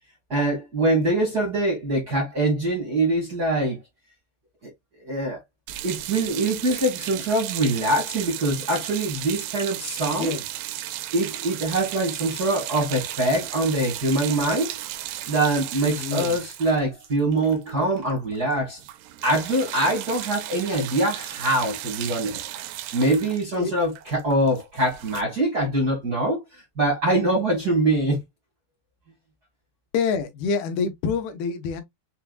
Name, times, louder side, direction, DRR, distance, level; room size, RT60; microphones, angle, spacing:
voice 1, 0.3-3.8 5.0-5.4 5.8-10.4 11.1-14.7 15.3-18.8 19.2-22.4 22.9-28.2, right 1 dB, 60° right, 1.0 m, -24 dB
sound 1, 5.7-18.1 18.3-18.5 18.8-25.2, right 14 dB, 80° right, 2.6 m, -35 dB
voice 2, 10.1-10.4 15.9-16.4 23.6-23.7 29.9-31.8, left 5 dB, 75° left, 2.6 m, -26 dB
6.9 x 2.4 x 2.3 m
omnidirectional pair, 4.7 m